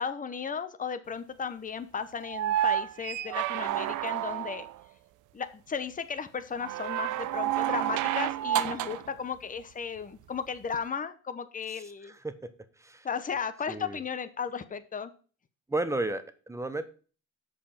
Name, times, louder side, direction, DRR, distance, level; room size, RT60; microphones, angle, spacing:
voice 1, 0.0-4.7 5.3-12.2 13.0-15.1, left 6 dB, 25° left, 11 dB, 0.8 m, -35 dB
sound 1, 2.2-4.8 6.6-9.1 10.7-10.8, right 12 dB, 80° right, 0.6 m, -30 dB
voice 2, 12.0-12.5 12.8-13.1 13.7-14.0 15.7-16.8, right 2 dB, 10° right, 10 dB, 0.9 m, -33 dB
6.7 x 5.4 x 5.8 m, 0.38 s
cardioid pair, 90°, 30 cm